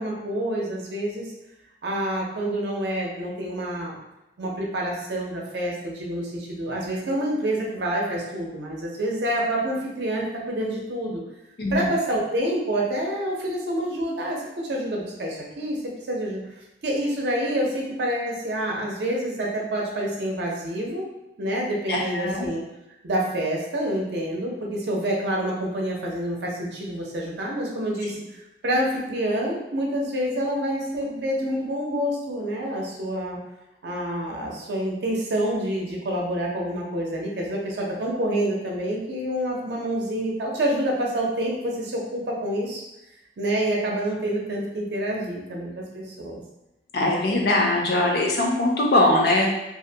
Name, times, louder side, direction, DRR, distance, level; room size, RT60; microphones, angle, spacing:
voice 1, 0.0-1.3 1.8-4.0 4.4-11.2 11.7-16.4 16.8-21.1 21.4-22.6 23.0-33.4 33.8-42.8 43.4-46.4, right 1 dB, 70° right, -2 dB, 0.5 m, -27 dB
voice 2, 21.9-22.5 46.9-49.5, left 1 dB, 60° left, -1 dB, 0.5 m, -21 dB
2.4 x 2.1 x 2.7 m, 0.94 s
head